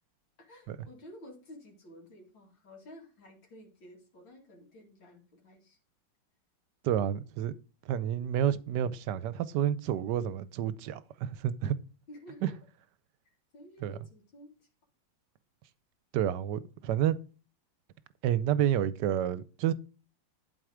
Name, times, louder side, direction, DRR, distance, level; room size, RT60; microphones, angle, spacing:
voice 1, 0.4-5.8 12.1-12.5 13.5-14.7, left 1 dB, 80° left, 3.0 m, -52 dB
voice 2, 6.8-7.5 7.9-11.8 12.4-12.5 13.8-13.9 16.1-17.2 18.2-19.7, right 10 dB, 70° right, 1.2 m, -29 dB
11.5 x 4.7 x 5.0 m
omnidirectional pair, 2.1 m